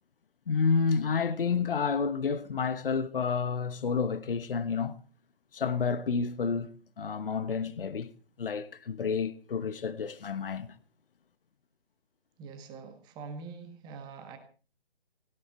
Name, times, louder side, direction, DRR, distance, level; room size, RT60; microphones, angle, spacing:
voice 1, 0.5-5.0 5.5-8.1 8.4-10.8, left 5 dB, 60° left, 1.2 m, -30 dB
voice 2, 12.4-14.4, right 5 dB, 15° right, 1.7 m, -44 dB
18.0 x 16.5 x 4.4 m
figure-of-eight pair, 145°, 31 cm